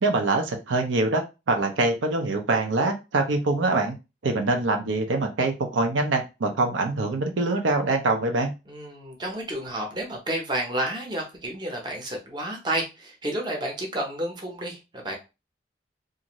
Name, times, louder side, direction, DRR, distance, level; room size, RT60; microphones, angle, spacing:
voice 1, 0.0-4.0 4.2-8.5, right 2 dB, 85° right, 4 dB, 0.6 m, -24 dB
voice 2, 8.7-15.2, right 1 dB, 25° right, 1 dB, 0.7 m, -31 dB
2.6 x 2.5 x 3.0 m, 0.27 s
head